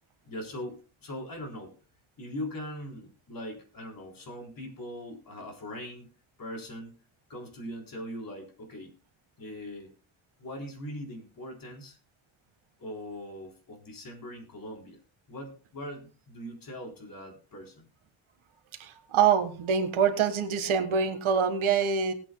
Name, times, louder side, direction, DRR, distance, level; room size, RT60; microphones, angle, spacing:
voice 1, 0.2-1.8 2.2-6.1 6.4-7.0 7.3-8.9 9.4-9.9 10.4-12.0 12.8-15.0 15.3-17.9, left 1 dB, 45° left, 1 dB, 3.8 m, -41 dB
voice 2, 18.8-22.1, right 7 dB, 80° right, 7 dB, 1.7 m, -25 dB
20.5 x 8.7 x 2.3 m, 0.35 s
cardioid pair, 130°, 48 cm